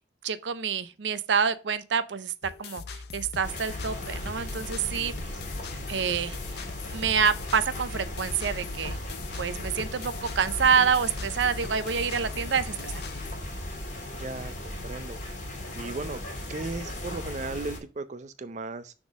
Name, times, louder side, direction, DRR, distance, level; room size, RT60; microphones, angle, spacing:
voice 1, 0.2-2.3 2.6-5.1 5.9-9.0 9.3-12.9, right 6 dB, 85° right, 0.5 m, -27 dB
sound 1, 2.4-13.3, left 5 dB, 60° left, 0.6 m, -41 dB
sound 2, 3.4-17.8, left 1 dB, 45° left, 2.1 m, -37 dB
voice 2, 14.1-15.2 15.7-16.2 16.5-18.9, right 3 dB, 40° right, 0.5 m, -36 dB
6.2 x 3.7 x 6.1 m
head